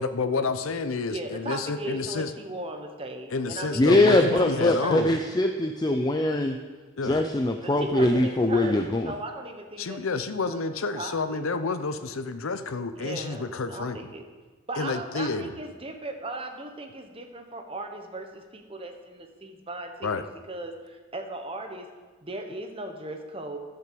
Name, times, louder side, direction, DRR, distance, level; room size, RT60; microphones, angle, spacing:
voice 1, 0.0-2.3 3.3-5.1 7.0-7.2 9.8-14.0 14.8-15.5 20.0-20.2, left 4 dB, 75° left, 11 dB, 0.7 m, -29 dB
voice 2, 1.1-5.0 7.2-7.3 7.6-8.8 9.0-10.0 10.3-10.6 10.9-11.5 13.0-14.2 14.7-20.1 20.5-21.9 22.2-23.6, right 2 dB, 25° right, 4 dB, 1.0 m, -37 dB
voice 3, 3.8-6.6 7.0-9.1, left 1 dB, 20° left, 5 dB, 0.4 m, -22 dB
13.0 x 5.8 x 6.8 m, 1.4 s
head